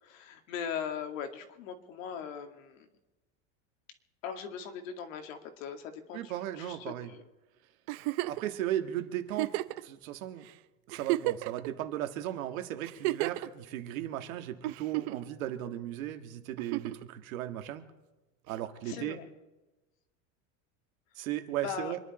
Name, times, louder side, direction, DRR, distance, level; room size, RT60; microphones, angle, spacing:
voice 1, 0.0-2.9 4.2-7.2 18.8-19.3 21.6-22.0, left 7 dB, 70° left, 5 dB, 2.4 m, -40 dB
voice 2, 6.1-7.1 8.3-10.5 10.9-17.9 18.5-19.2 21.2-22.0, right 12 dB, 80° right, 7 dB, 1.9 m, -36 dB
Giggle, 7.9-8.5 9.3-9.8 10.5-10.6 10.9-11.7 12.8-13.5 14.6-15.3 16.6-17.0 18.5-18.6, right 18 dB, 50° right, 0.6 m, -32 dB
26.5 x 10.5 x 4.3 m, 1.1 s
supercardioid pair, 155°, 40 cm